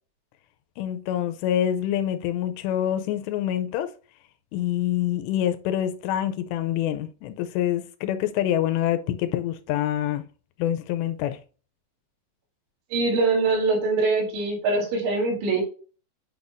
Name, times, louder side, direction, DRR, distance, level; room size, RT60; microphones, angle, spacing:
voice 1, 0.8-3.9 4.5-10.2 10.6-11.4, left 11 dB, 80° left, 2.6 m, -26 dB
voice 2, 12.9-15.6, right 3 dB, 70° right, 4.8 m, -23 dB
8.9 x 6.0 x 2.5 m
omnidirectional pair, 5.4 m